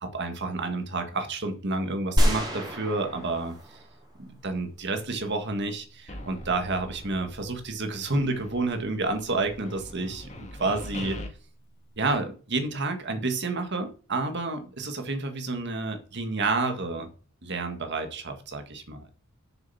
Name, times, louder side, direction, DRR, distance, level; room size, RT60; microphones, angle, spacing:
voice 1, 0.0-3.8 4.2-11.2 12.0-17.1 17.4-19.0, right 3 dB, 55° right, 6 dB, 1.9 m, -30 dB
sound 1, 2.2-4.4, equal, 20° right, 3.0 m, -26 dB
sound 2, 6.1-7.8 8.0-11.3, left 1 dB, 35° left, 2.0 m, -42 dB
7.1 x 6.9 x 7.1 m, 0.40 s
head